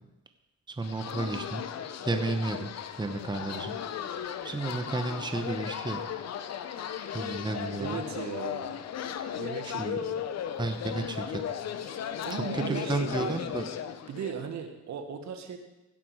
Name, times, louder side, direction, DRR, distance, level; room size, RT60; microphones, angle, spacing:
voice 1, 0.7-1.6 2.0-2.7 3.0-3.8 4.2-6.0 7.1-8.0 9.6-10.0 10.6-11.4 11.8-12.0 12.3-13.6, right 3 dB, 15° right, 6 dB, 0.9 m, -32 dB
sound 1, 0.8-14.5, left 9 dB, 60° left, 0.8 m, -36 dB
voice 2, 7.8-8.7 9.4-10.2 12.2-13.5 14.1-15.6, right 6 dB, 65° right, 6 dB, 1.4 m, -37 dB
16.5 x 6.0 x 4.7 m, 0.99 s
cardioid pair, 90°, 30 cm